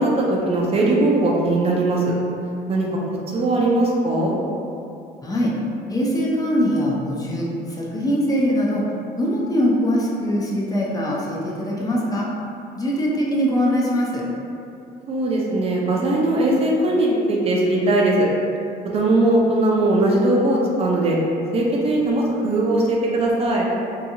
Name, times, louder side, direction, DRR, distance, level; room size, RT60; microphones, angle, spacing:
voice 1, 0.0-2.1 2.7-2.9 3.3-4.4 15.1-18.3 18.9-21.2 21.5-23.7, right 2 dB, 35° right, -3 dB, 0.4 m, -19 dB
voice 2, 5.2-5.5 5.9-8.8 9.2-12.3 12.8-14.2, equal, 20° left, -5 dB, 0.4 m, -22 dB
2.8 x 2.3 x 2.6 m, 2.5 s
cardioid pair, 110°, 17 cm